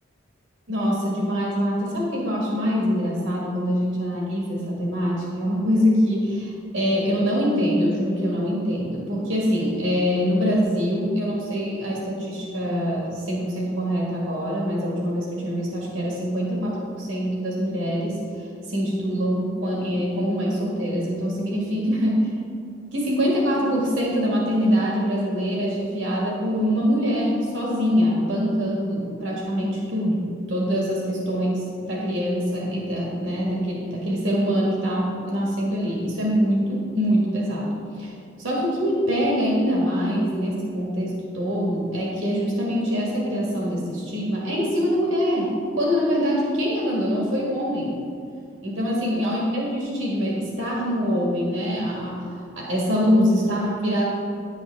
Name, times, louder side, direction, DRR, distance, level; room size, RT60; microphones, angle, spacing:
voice 1, 0.7-22.3 22.9-37.7 37.9-38.1 38.4-48.0 48.6-54.1, equal, 75° right, -4 dB, 1.9 m, -24 dB
10.0 x 7.9 x 3.5 m, 2.3 s
head